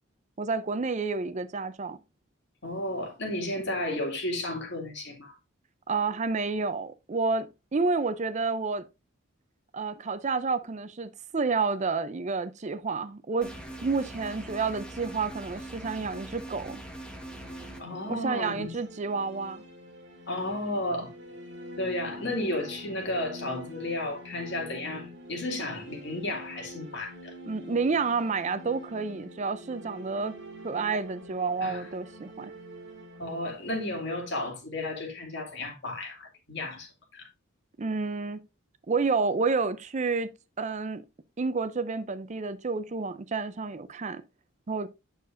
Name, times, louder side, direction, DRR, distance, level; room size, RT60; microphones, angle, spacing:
voice 1, 0.4-2.0 5.9-8.9 9.7-13.5 13.8-16.8 18.1-19.6 27.5-30.4 30.6-32.5 37.8-38.4 38.9-41.0 41.4-44.2 44.7-44.9, right 4 dB, 35° right, 0.5 m, -30 dB
voice 2, 2.6-5.4 17.8-18.8 20.3-21.1 21.8-27.3 31.6-31.9 33.2-37.3, left 1 dB, 55° left, 2.6 m, -33 dB
sound 1, 13.4-17.8, right 1 dB, 5° left, 1.3 m, -42 dB
sound 2, 16.9-34.9, equal, 60° right, 2.2 m, -46 dB
8.9 x 6.6 x 2.5 m
head